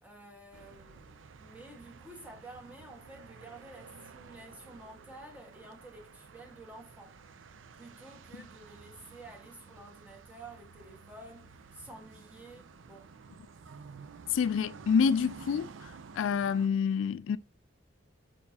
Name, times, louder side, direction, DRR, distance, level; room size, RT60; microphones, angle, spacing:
voice 1, 0.0-7.2 7.7-13.2, right 2 dB, 10° right, 1.5 m, -51 dB
sound 1, 0.5-16.7, right 5 dB, 80° right, 0.5 m, -52 dB
voice 2, 14.3-17.4, left 6 dB, 80° left, 0.3 m, -28 dB
6.5 x 5.6 x 2.8 m
head